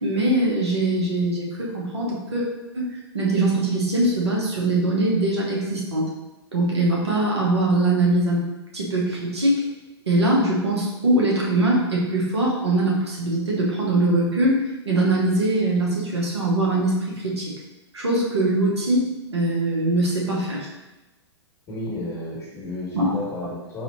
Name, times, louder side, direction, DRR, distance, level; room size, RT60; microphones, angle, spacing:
voice 1, 0.0-2.4 2.7-6.1 6.5-8.4 8.7-9.6 10.1-14.6 14.8-17.5 17.9-20.7 22.9-23.1, right 2 dB, 75° right, -4 dB, 1.1 m, -22 dB
voice 2, 21.7-23.8, left 2 dB, 20° left, -4 dB, 1.5 m, -32 dB
4.7 x 2.8 x 2.8 m, 1.0 s
figure-of-eight pair, 110°, 14 cm